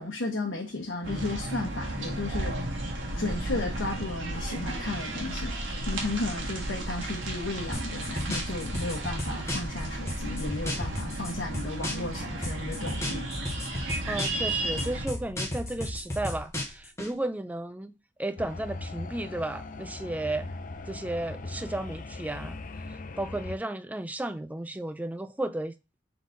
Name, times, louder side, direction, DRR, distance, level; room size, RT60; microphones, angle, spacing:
voice 1, 0.0-2.7 3.1-5.6 5.9-13.3, left 2 dB, 75° left, 1.0 m, -34 dB
sound 1, 1.0-15.1, right 1 dB, 85° right, 1.6 m, -34 dB
sound 2, 7.7-9.8 10.1-12.2 12.4-14.5 14.8-17.1, left 1 dB, 15° left, 1.3 m, -34 dB
voice 2, 14.1-20.5 20.9-22.6 22.9-25.7, right 1 dB, 10° right, 0.4 m, -34 dB
sound 3, 18.4-23.6, left 2 dB, 45° left, 0.5 m, -39 dB
4.0 x 3.8 x 3.5 m
head